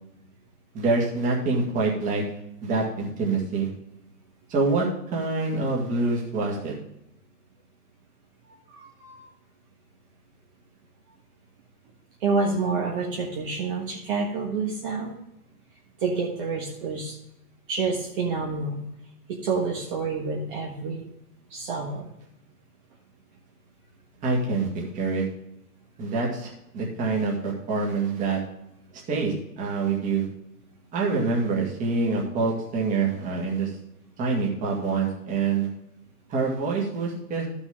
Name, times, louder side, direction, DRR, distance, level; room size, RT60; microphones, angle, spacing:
voice 1, 0.7-2.2 2.6-3.7 4.5-6.7 24.2-25.3 26.0-28.4 29.1-30.3 30.9-33.7 34.2-35.7 36.3-37.5, right 4 dB, 15° right, -2 dB, 1.9 m, -26 dB
voice 2, 8.7-9.2 12.2-15.2 16.0-17.1 17.7-18.8 19.3-21.1 21.5-22.1, right 4 dB, 35° right, -2 dB, 1.5 m, -28 dB
13.0 x 6.2 x 3.6 m, 0.83 s
hypercardioid pair, 155°, 48 cm